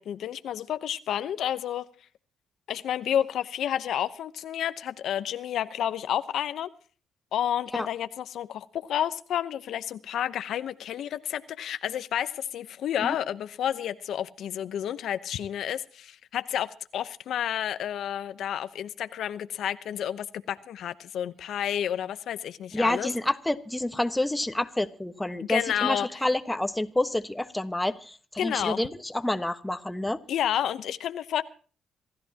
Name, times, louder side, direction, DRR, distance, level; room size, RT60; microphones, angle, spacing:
voice 1, 0.0-1.9 2.7-6.7 7.3-23.1 25.4-26.2 28.4-28.8 30.3-31.4, left 10 dB, 70° left, 0.9 m, -30 dB
voice 2, 22.7-30.2, left 1 dB, 10° left, 1.3 m, -28 dB
27.0 x 14.0 x 2.9 m
cardioid pair, 90°, 0 cm